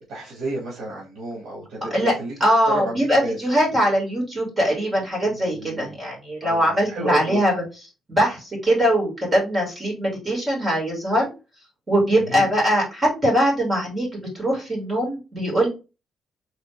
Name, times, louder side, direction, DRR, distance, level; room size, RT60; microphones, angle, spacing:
voice 1, 0.1-1.9 2.2-2.3 2.7-3.4 5.2-5.9 6.4-7.4 12.1-12.4, right 1 dB, 80° right, -4 dB, 1.8 m, -31 dB
voice 2, 2.4-7.6 8.1-11.3 11.9-15.7, equal, 20° right, -2 dB, 2.2 m, -21 dB
4.2 x 3.0 x 3.2 m, 0.29 s
cardioid pair, 165°, 0 cm